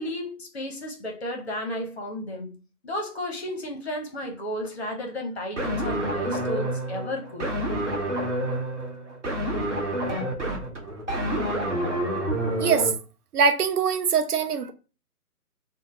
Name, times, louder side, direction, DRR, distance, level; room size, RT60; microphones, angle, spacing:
voice 1, 0.0-2.6 2.8-7.5, left 1 dB, 45° left, 0.7 m, -33 dB
sound 1, 5.6-12.9, right 1 dB, 50° right, 0.9 m, -28 dB
voice 2, 12.6-12.9 13.3-14.7, right 6 dB, 70° right, 0.6 m, -22 dB
2.6 x 2.1 x 3.0 m
figure-of-eight pair, 140°, 47 cm